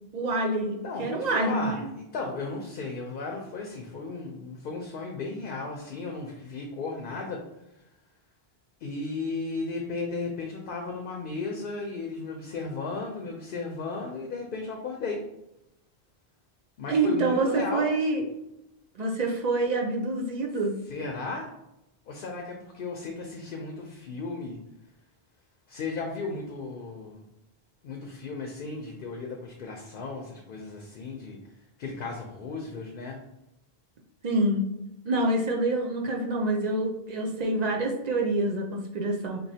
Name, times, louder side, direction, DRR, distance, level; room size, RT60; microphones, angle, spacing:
voice 1, 0.1-1.9 16.9-18.2 18.9-20.8 34.2-34.7 35.0-39.4, right 2 dB, 45° right, 0 dB, 0.7 m, -26 dB
voice 2, 0.8-7.4 8.8-15.2 16.8-17.9 20.9-21.5 22.1-24.6 25.7-27.2 27.8-31.4 31.8-33.2, left 3 dB, 60° left, 1 dB, 0.7 m, -35 dB
4.2 x 3.0 x 2.7 m, 0.87 s
omnidirectional pair, 1.1 m